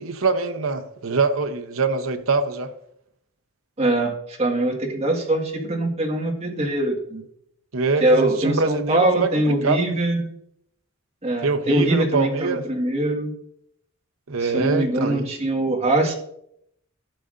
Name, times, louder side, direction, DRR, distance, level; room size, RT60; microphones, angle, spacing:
voice 1, 0.0-2.7 7.7-9.3 9.6-9.9 11.4-12.6 14.3-15.2, right 4 dB, 75° right, 0.8 m, -24 dB
voice 2, 3.8-7.2 8.0-10.3 11.2-13.3 14.4-16.1, right 1 dB, 30° right, 1.6 m, -22 dB
11.5 x 8.0 x 2.5 m
head